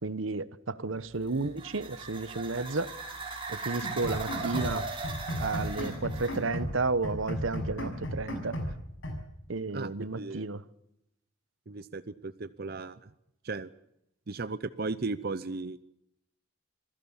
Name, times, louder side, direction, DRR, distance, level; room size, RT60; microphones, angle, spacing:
voice 1, 0.0-2.9 3.5-4.9 5.4-8.6 9.5-10.6, right 3 dB, 75° right, 1.0 m, -32 dB
sound 1, 1.1-6.4, right 3 dB, 25° right, 5.9 m, -39 dB
sound 2, 3.8-4.8 5.0-6.8 7.0-8.8 9.0-9.2, equal, 75° left, 6.3 m, -35 dB
Piano, 4.6-6.5, left 3 dB, 10° left, 4.1 m, -48 dB
voice 2, 9.7-10.5 11.7-13.1 13.4-13.7 14.3-15.8, right 3 dB, 50° right, 0.7 m, -36 dB
26.5 x 16.5 x 7.2 m
head